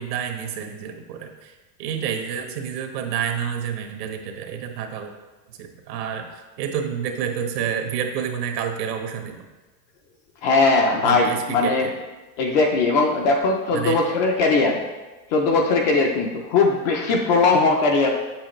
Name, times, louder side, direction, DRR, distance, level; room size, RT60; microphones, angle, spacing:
voice 1, 0.0-5.1 5.5-6.3 6.6-9.4 11.0-11.9 13.7-14.0, right 8 dB, 75° right, 4 dB, 1.2 m, -29 dB
voice 2, 10.4-11.9 12.4-14.8 15.3-18.1, left 3 dB, 30° left, 2 dB, 0.4 m, -19 dB
7.5 x 6.4 x 3.0 m, 1.2 s
supercardioid pair, 160°, 48 cm